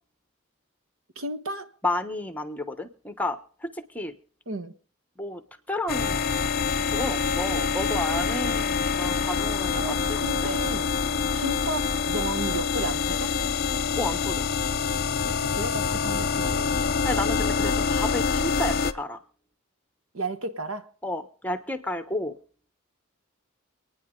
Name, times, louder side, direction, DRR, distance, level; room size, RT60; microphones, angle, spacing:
voice 1, 1.1-1.7 4.5-4.7 9.8-10.9 11.3-13.3 15.2-16.8 20.1-20.9, right 2 dB, 75° right, 1.4 m, -33 dB
voice 2, 1.8-4.1 5.2-5.4 5.7-6.3 6.9-10.6 11.0-11.2 14.0-14.5 17.0-19.2 21.0-22.4, left 1 dB, 10° left, 1.1 m, -31 dB
sound 1, 5.9-18.9, left 5 dB, 45° left, 0.8 m, -26 dB
27.5 x 9.8 x 3.8 m
head